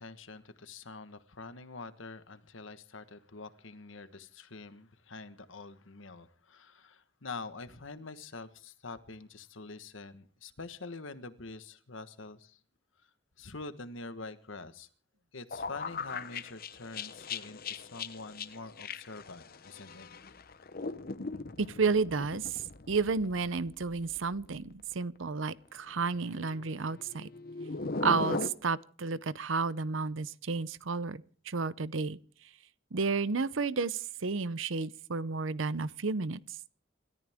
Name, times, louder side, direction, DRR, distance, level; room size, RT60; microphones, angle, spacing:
voice 1, 0.0-12.6 13.4-14.9 15.3-20.1, left 3 dB, 75° left, 1.4 m, -45 dB
sound 1, 15.5-24.7 24.9-25.2 26.0-28.5, left 3 dB, 50° left, 0.9 m, -39 dB
voice 2, 21.6-27.3 28.0-32.2 32.9-36.4, right 4 dB, 75° right, 0.7 m, -32 dB
28.0 x 14.0 x 3.6 m
head